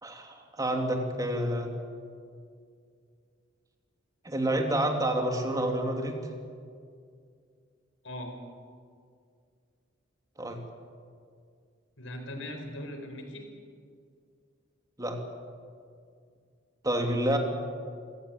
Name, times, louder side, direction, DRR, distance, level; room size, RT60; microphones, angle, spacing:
voice 1, 0.0-1.7 4.2-6.2 10.4-10.6 15.0-15.2 16.8-17.4, right 1 dB, 20° right, 3 dB, 2.9 m, -28 dB
voice 2, 12.0-13.5 16.9-17.2, left 1 dB, 85° left, 5 dB, 4.7 m, -40 dB
26.5 x 17.0 x 8.7 m, 2.2 s
head